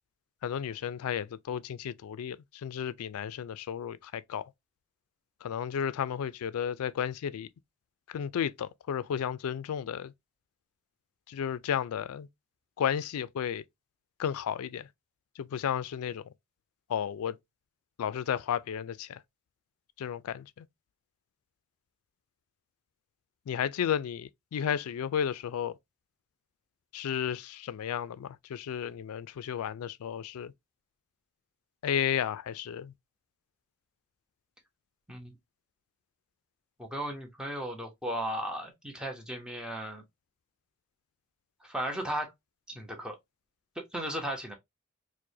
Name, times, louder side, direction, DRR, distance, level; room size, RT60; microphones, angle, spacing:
voice 1, 0.4-4.5 5.4-7.5 8.1-10.1 11.3-12.3 12.8-13.6 14.2-14.9 15.4-16.2 16.9-17.4 18.0-19.2 20.0-20.7 23.5-25.7 26.9-30.5 31.8-32.9, left 8 dB, 80° left, 0.3 m, -33 dB
voice 2, 36.8-40.0 41.6-42.3 42.7-43.2 43.8-44.5, right 1 dB, 5° right, 0.7 m, -35 dB
4.6 x 2.1 x 2.6 m
head